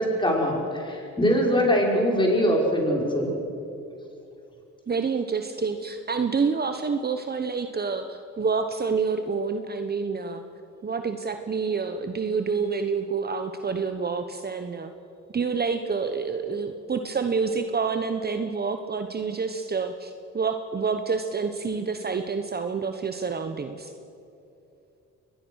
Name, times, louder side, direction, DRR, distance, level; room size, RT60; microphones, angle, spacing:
voice 1, 0.0-3.3, equal, 15° left, 0 dB, 5.4 m, -22 dB
voice 2, 4.9-10.4 10.8-14.9 15.3-23.9, right 5 dB, 30° right, 7 dB, 1.1 m, -28 dB
23.0 x 19.5 x 6.5 m, 2.7 s
cardioid pair, 90°, 30 cm